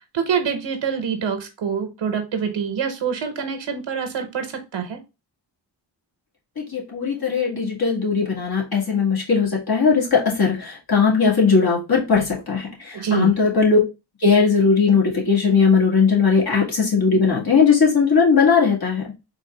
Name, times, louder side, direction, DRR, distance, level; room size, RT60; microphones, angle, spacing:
voice 1, 0.1-5.0 12.9-13.4, right 7 dB, 70° right, 6 dB, 0.8 m, -25 dB
voice 2, 6.6-13.8 14.2-19.0, left 5 dB, 50° left, -3 dB, 1.9 m, -18 dB
4.0 x 2.4 x 3.2 m, 0.27 s
cardioid pair, 60°, 46 cm